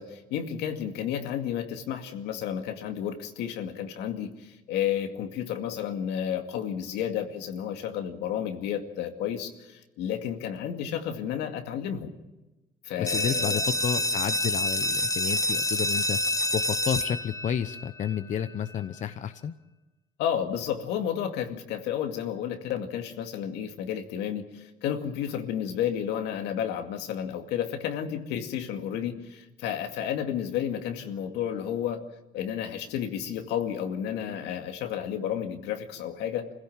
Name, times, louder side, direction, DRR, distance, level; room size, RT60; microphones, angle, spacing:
voice 1, 0.0-12.1 12.8-13.6 20.2-32.0 32.3-36.5, left 9 dB, 90° left, 5 dB, 2.3 m, -32 dB
voice 2, 13.0-16.2 16.5-19.5, left 8 dB, 45° left, 11 dB, 0.9 m, -31 dB
sound 1, 13.1-18.5, left 1 dB, 20° left, 1.2 m, -28 dB
26.0 x 16.5 x 7.4 m, 1.0 s
cardioid pair, 110°, 17 cm